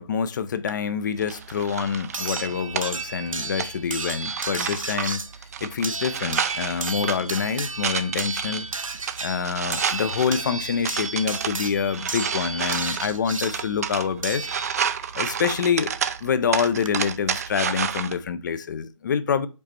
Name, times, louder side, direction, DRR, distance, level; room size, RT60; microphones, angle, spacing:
voice 1, 0.0-5.2 5.6-8.7 9.2-14.5 15.1-15.9 16.2-19.5, left 6 dB, 35° left, 0.4 m, -26 dB
sound 1, 0.7-0.8 2.1-15.1 16.4-16.5 16.8-16.9, right 3 dB, 85° right, 0.7 m, -33 dB
sound 2, 1.2-18.1, right 7 dB, 30° right, 0.4 m, -31 dB
5.2 x 4.1 x 4.4 m
figure-of-eight pair, 145°, 17 cm